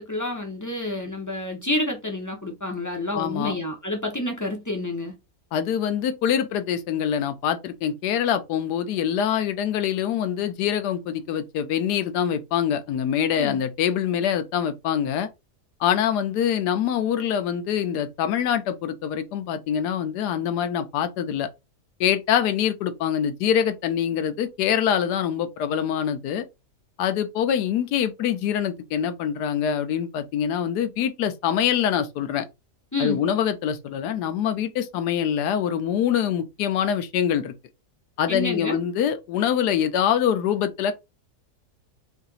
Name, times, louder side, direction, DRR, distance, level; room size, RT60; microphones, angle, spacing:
voice 1, 0.0-5.1 13.4-13.6 32.9-33.2 38.3-38.8, left 1 dB, 25° left, 0.3 m, -29 dB
voice 2, 3.1-3.5 5.5-15.3 15.8-21.5 22.0-26.4 27.0-32.5 33.0-37.5 38.2-40.9, left 9 dB, 85° left, 1.2 m, -24 dB
3.2 x 2.8 x 3.9 m
omnidirectional pair, 1.7 m